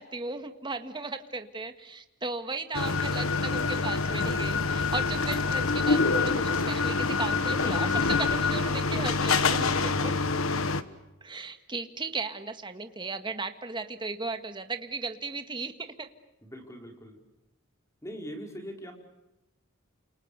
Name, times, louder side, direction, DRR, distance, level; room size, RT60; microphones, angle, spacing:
voice 1, 0.0-10.2 11.2-16.1, right 3 dB, 25° right, 8 dB, 1.8 m, -36 dB
sound 1, 2.7-10.8, left 4 dB, 90° left, 1.4 m, -26 dB
voice 2, 16.4-17.2 18.0-18.9, equal, 15° left, 3 dB, 4.8 m, -41 dB
29.5 x 28.0 x 6.9 m, 0.94 s
head